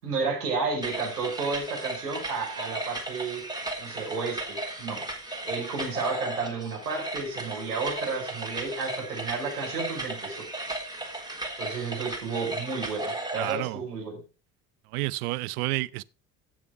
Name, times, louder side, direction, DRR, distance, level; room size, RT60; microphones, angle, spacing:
voice 1, 0.0-3.4 3.8-5.0 5.4-10.4 11.6-14.2, right 4 dB, 85° right, 5.1 m, -32 dB
sound 1, 0.8-13.7, right 2 dB, 10° right, 3.8 m, -35 dB
voice 2, 13.4-13.8 14.9-16.0, right 20 dB, 70° right, 0.7 m, -30 dB
15.5 x 6.9 x 4.5 m
hypercardioid pair, 60°, 45 cm